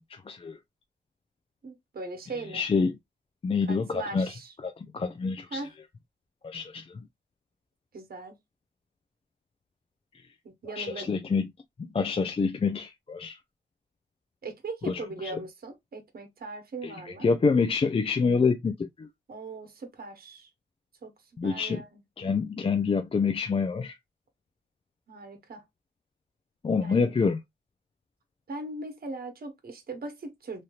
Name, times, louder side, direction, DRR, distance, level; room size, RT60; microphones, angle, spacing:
voice 1, 0.1-0.6 2.5-3.0 3.4-4.3 4.6-5.6 6.4-6.8 10.8-11.5 11.8-13.4 14.9-15.4 16.8-16.9 17.2-19.1 21.4-21.8 22.2-23.9 26.6-27.4, left 5 dB, 30° left, 0.4 m, -27 dB
voice 2, 1.6-2.6 3.7-4.5 5.5-5.7 7.9-8.4 10.4-11.1 14.4-17.3 19.3-20.5 21.0-21.1 21.4-22.0 25.1-25.6 26.8-27.1 28.5-30.6, right 3 dB, 50° right, 1.0 m, -39 dB
3.2 x 2.8 x 2.3 m
wide cardioid pair, 105°, 19 cm